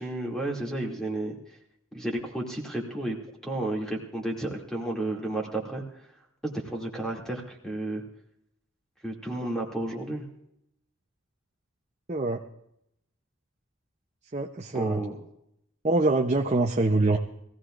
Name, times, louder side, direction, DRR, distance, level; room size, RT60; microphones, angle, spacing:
voice 1, 0.0-1.4 1.9-3.2 3.4-5.8 6.4-8.0 9.0-10.2 14.7-15.2, right 1 dB, 5° left, -1 dB, 2.5 m, -32 dB
voice 2, 12.1-12.4 14.3-15.0 15.8-17.2, right 2 dB, 30° right, 3 dB, 0.7 m, -24 dB
22.5 x 16.0 x 2.5 m, 0.78 s
head